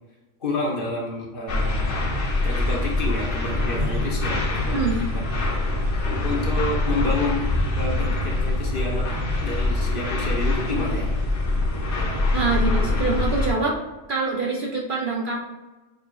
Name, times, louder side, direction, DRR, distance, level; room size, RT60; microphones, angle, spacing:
voice 1, 0.4-2.0 2.4-4.8 5.1-5.6 6.2-7.5 7.8-9.1 9.4-11.2, left 2 dB, 50° left, -2 dB, 0.9 m, -29 dB
sound 1, 1.5-13.5, left 2 dB, 70° left, 1.2 m, -24 dB
voice 2, 12.3-13.8 14.1-15.4, right 3 dB, 50° right, -3 dB, 0.7 m, -25 dB
6.6 x 2.8 x 2.3 m, 1.1 s
omnidirectional pair, 1.3 m